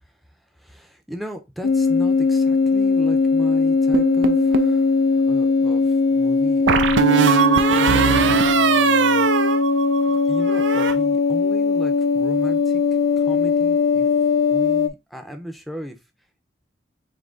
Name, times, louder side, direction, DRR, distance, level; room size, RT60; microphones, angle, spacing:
voice 1, 0.6-7.3 7.7-8.0 8.3-9.3 10.3-12.8 13.2-14.1 14.5-16.0, equal, ahead, 0.6 m, -36 dB
sound 1, 1.6-14.9, left 4 dB, 55° left, 0.4 m, -19 dB
sound 2, 3.9-4.8 6.7-10.2 10.5-10.9, right 7 dB, 80° right, 0.4 m, -20 dB
3.9 x 2.8 x 3.5 m
head